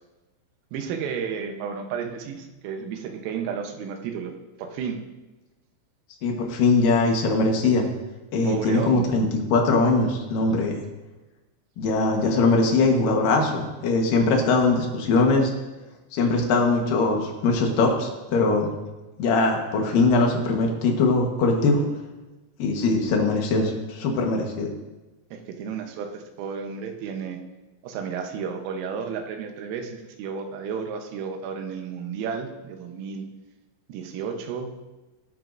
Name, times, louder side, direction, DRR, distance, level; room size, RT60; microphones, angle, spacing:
voice 1, 0.7-4.3 4.6-5.0 8.4-9.2 25.3-27.4 27.8-33.3 33.9-34.7, right 6 dB, 85° right, 4 dB, 3.7 m, -32 dB
voice 2, 6.2-7.9 8.3-10.7 11.8-15.5 16.1-18.7 19.2-21.8 22.6-24.7, left 3 dB, 65° left, 1 dB, 2.2 m, -21 dB
19.0 x 9.2 x 2.6 m, 1.1 s
omnidirectional pair, 5.7 m